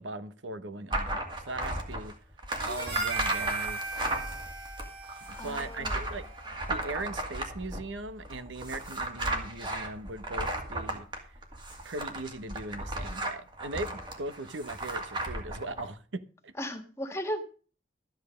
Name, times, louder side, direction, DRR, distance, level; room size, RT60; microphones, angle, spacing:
voice 1, 0.0-2.1 2.6-3.8 5.4-6.2 6.7-11.4 11.8-16.5, right 2 dB, 85° right, 1.1 m, -39 dB
sound 1, 0.9-15.8, right 2 dB, 25° right, 2.2 m, -35 dB
Harmonica, 2.6-7.1, right 3 dB, 60° right, 4.2 m, -38 dB
voice 2, 5.3-6.0 16.6-17.4, equal, 15° left, 1.6 m, -36 dB
13.0 x 9.2 x 5.1 m
head